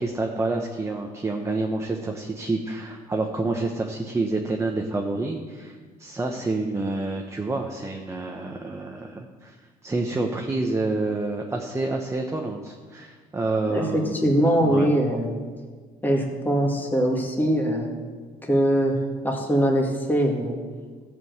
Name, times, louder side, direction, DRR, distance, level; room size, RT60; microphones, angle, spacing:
voice 1, 0.0-9.6 9.8-14.2 14.6-14.9, right 2 dB, 15° right, 2 dB, 0.9 m, -28 dB
voice 2, 13.7-15.3 16.0-17.9 18.4-19.0 19.2-20.6, equal, 10° left, 0 dB, 2.1 m, -22 dB
13.0 x 5.3 x 7.9 m, 1.5 s
cardioid pair, 110°, 17 cm